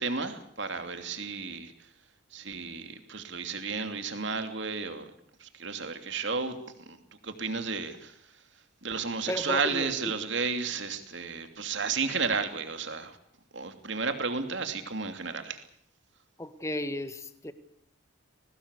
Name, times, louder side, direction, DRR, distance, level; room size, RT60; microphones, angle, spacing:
voice 1, 0.0-1.7 2.3-5.1 5.4-7.0 7.2-8.2 8.8-13.2 13.5-15.6, right 4 dB, 55° right, 7 dB, 2.8 m, -32 dB
voice 2, 9.3-10.1 16.4-17.5, left 1 dB, 15° left, 10 dB, 1.6 m, -34 dB
22.5 x 19.0 x 8.3 m, 0.70 s
head